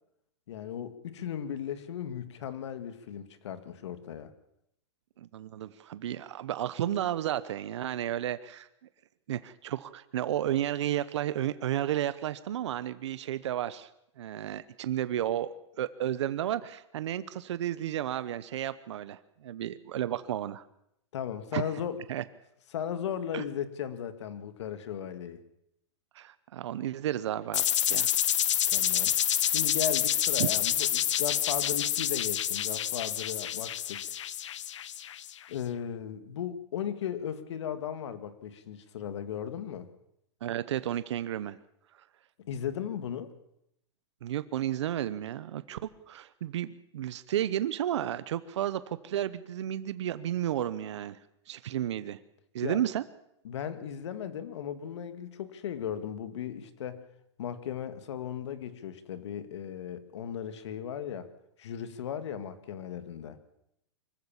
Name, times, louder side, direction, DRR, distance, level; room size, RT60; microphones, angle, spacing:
voice 1, 0.5-4.3 21.1-22.0 22.7-25.4 28.7-29.1 29.5-34.0 35.5-39.9 42.5-43.3 52.6-52.8 53.4-57.0 57.4-61.3 61.6-63.4, left 9 dB, 70° left, 11 dB, 2.2 m, -36 dB
voice 2, 5.2-8.7 9.3-13.9 14.2-20.6 21.5-21.6 22.1-22.2 23.3-23.4 26.1-28.1 30.4-30.5 40.4-41.6 44.2-51.2 51.5-52.2 52.5-53.0, right 11 dB, 75° right, 14 dB, 1.0 m, -32 dB
sound 1, 27.5-35.3, left 11 dB, 85° left, 0.7 m, -28 dB
24.5 x 15.0 x 7.3 m, 0.78 s
supercardioid pair, 155°, 15 cm